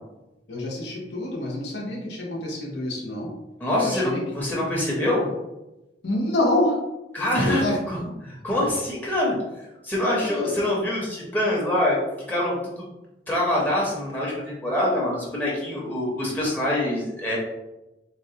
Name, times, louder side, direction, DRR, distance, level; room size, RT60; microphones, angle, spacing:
voice 1, 0.5-3.3 3.8-4.2 6.0-6.8 7.3-7.8 10.0-10.5, left 1 dB, 70° left, -3 dB, 0.7 m, -27 dB
voice 2, 3.6-5.3 7.1-12.0 12.3-12.9 13.3-17.4, left 1 dB, 10° left, -5 dB, 0.7 m, -25 dB
4.0 x 2.1 x 2.7 m, 0.97 s
head